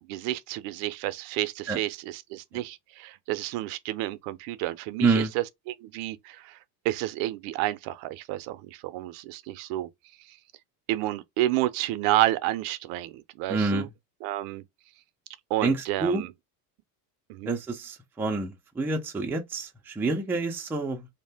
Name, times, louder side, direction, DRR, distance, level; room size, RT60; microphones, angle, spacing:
voice 1, 0.1-6.6 6.8-9.9 10.9-13.9 14.2-14.6 15.5-16.3 17.3-17.6, right 16 dB, 65° right, 0.6 m, -30 dB
voice 2, 5.0-5.3 13.5-13.9 15.6-16.2 17.5-21.1, right 3 dB, 5° right, 0.4 m, -27 dB
2.6 x 2.1 x 3.3 m
supercardioid pair, 110°, 48 cm